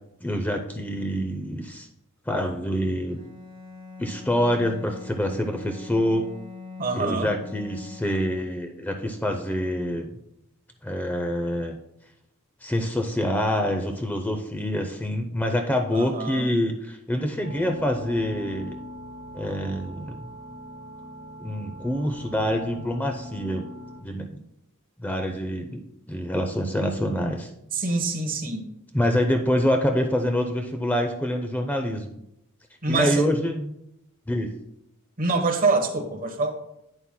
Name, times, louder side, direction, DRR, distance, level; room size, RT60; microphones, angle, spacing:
voice 1, 0.2-1.9 2.3-3.2 4.0-6.3 6.9-10.2 10.8-11.8 12.6-18.8 19.3-20.2 21.4-23.6 24.0-24.3 25.0-25.8 26.1-27.5 28.9-32.2 32.9-33.7 34.3-34.5, equal, 10° left, 4 dB, 0.5 m, -26 dB
Bowed string instrument, 3.1-8.9, left 4 dB, 20° right, 1.6 m, -42 dB
voice 2, 6.8-7.3 15.9-16.5 27.7-28.7 32.8-33.2 35.2-36.5, right 3 dB, 40° right, 4 dB, 1.1 m, -25 dB
sound 1, 17.4-24.0, equal, 60° left, 2.4 m, -41 dB
11.0 x 8.8 x 2.2 m, 0.81 s
head